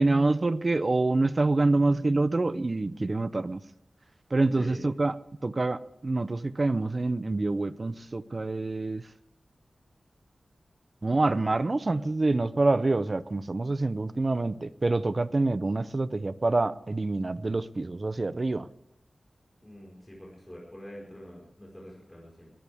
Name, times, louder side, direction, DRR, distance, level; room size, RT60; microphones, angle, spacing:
voice 1, 0.0-3.6 4.3-5.1 5.4-9.0 11.0-18.7, right 2 dB, 40° right, 15 dB, 0.6 m, -26 dB
voice 2, 4.5-4.8 11.9-12.0 19.6-22.5, equal, 10° left, -4 dB, 4.8 m, -45 dB
21.5 x 14.5 x 3.5 m, 0.84 s
wide cardioid pair, 100°, 0 cm